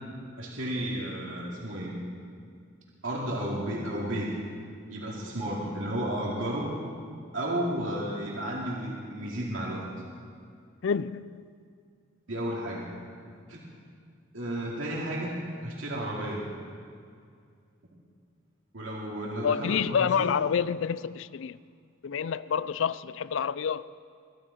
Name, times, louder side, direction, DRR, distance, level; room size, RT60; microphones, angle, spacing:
voice 1, 0.4-2.0 3.0-4.3 4.9-6.8 7.3-9.9 12.3-12.9 13.5-13.6 14.3-15.4 15.6-16.5 18.7-20.3, right 1 dB, 75° right, 2.6 m, -32 dB
voice 2, 10.8-11.5 19.4-21.6 22.0-23.9, left 7 dB, 70° left, 0.4 m, -28 dB
22.5 x 12.5 x 4.2 m
head